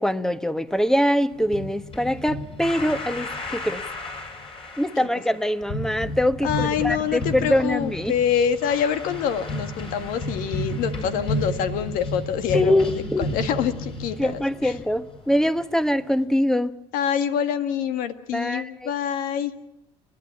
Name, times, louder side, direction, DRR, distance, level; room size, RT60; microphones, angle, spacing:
voice 1, 0.0-3.8 4.8-8.1 12.5-13.3 14.2-16.7 18.3-18.9, left 1 dB, 5° left, 1.3 m, -23 dB
sound 1, 1.3-16.2, left 1 dB, 40° left, 7.1 m, -33 dB
voice 2, 6.4-12.8 13.3-14.7 16.9-19.5, left 8 dB, 70° left, 1.7 m, -26 dB
30.0 x 11.0 x 9.9 m
supercardioid pair, 75°, 14 cm